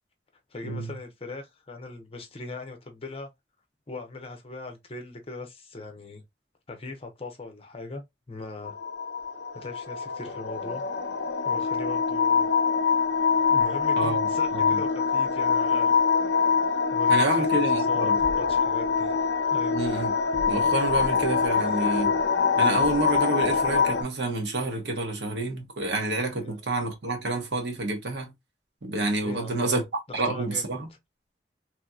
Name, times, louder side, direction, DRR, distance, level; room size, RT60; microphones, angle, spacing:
voice 1, 0.5-3.3 3.9-6.2 6.7-8.7 9.5-10.8 11.4-12.5 13.5-16.0 16.2-16.4 16.9-18.1 18.4-19.1 19.5-19.8 26.4-26.6 29.2-29.8 30.1-30.7, left 3 dB, 35° left, 0.7 m, -39 dB
sound 1, 8.6-24.0, left 5 dB, 80° left, 0.5 m, -24 dB
voice 2, 14.0-14.8 17.1-18.2 19.7-20.1 20.5-22.1 22.6-28.3 28.8-29.8 30.1-30.9, right 2 dB, 75° right, 1.1 m, -28 dB
3.0 x 2.8 x 2.3 m
head